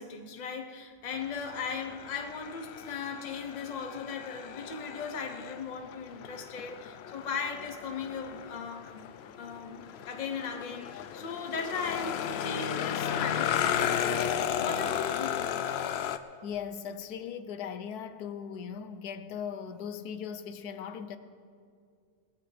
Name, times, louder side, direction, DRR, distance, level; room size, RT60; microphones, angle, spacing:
voice 1, 0.0-9.1 9.4-15.5, left 5 dB, 35° left, 0.8 m, -38 dB
sound 1, 1.1-16.2, left 9 dB, 70° left, 0.6 m, -34 dB
voice 2, 16.4-21.2, left 7 dB, 90° left, 1.2 m, -38 dB
20.0 x 14.0 x 3.3 m
omnidirectional pair, 1.6 m